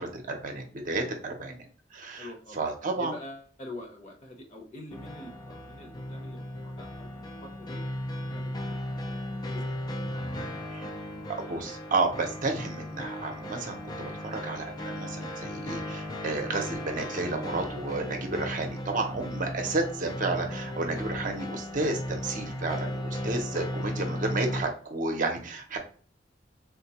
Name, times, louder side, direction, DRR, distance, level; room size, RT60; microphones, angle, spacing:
voice 1, 0.0-1.7 1.9-2.3 2.5-3.1 10.7-10.9 11.3-25.8, right 3 dB, 45° right, 3 dB, 0.7 m, -31 dB
voice 2, 2.2-7.8 8.3-8.8 9.1-9.2 9.5-10.2 10.8-11.3, left 1 dB, 40° left, 1 dB, 0.9 m, -45 dB
sound 1, 4.9-24.6, left 1 dB, 25° left, 0.4 m, -36 dB
3.6 x 2.2 x 2.8 m, 0.42 s
head